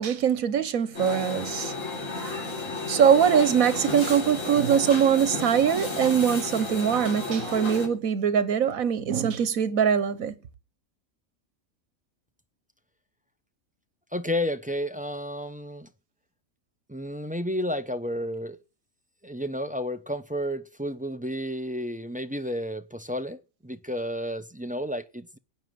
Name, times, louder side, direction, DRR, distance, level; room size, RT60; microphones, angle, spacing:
voice 1, 0.0-1.7 2.9-10.3, right 8 dB, 80° right, 1.5 m, -22 dB
sound 1, 0.9-7.9, left 2 dB, 70° left, 3.9 m, -33 dB
voice 2, 14.1-15.9 16.9-18.6 19.2-25.4, equal, 10° right, 0.3 m, -31 dB
16.0 x 9.0 x 7.7 m
omnidirectional pair, 1.4 m